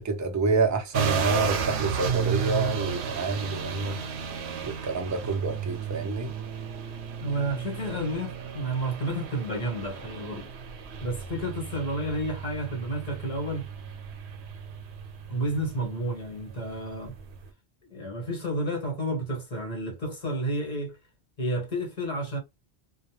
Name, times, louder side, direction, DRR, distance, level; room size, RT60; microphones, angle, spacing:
voice 1, 0.0-4.0 4.6-6.3, right 3 dB, 25° right, 0.5 m, -28 dB
sound 1, 0.9-17.5, right 6 dB, 80° right, 0.9 m, -34 dB
voice 2, 7.2-10.5 11.0-13.7 15.3-17.1 17.9-21.0 21.4-22.4, right 1 dB, 40° left, 1.2 m, -31 dB
2.3 x 2.2 x 3.0 m
omnidirectional pair, 1.1 m